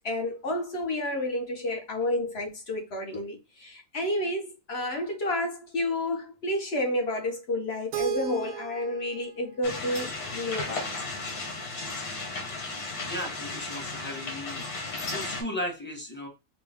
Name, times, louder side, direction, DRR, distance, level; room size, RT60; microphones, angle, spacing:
voice 1, 0.0-11.0, left 1 dB, 50° left, 1.1 m, -30 dB
Keyboard (musical), 7.9-10.8, right 13 dB, 85° right, 1.1 m, -37 dB
sound 1, 9.6-15.4, left 3 dB, 80° left, 1.6 m, -35 dB
voice 2, 13.1-14.7 15.1-16.3, left 1 dB, 10° left, 0.9 m, -35 dB
4.1 x 2.4 x 3.4 m
omnidirectional pair, 1.5 m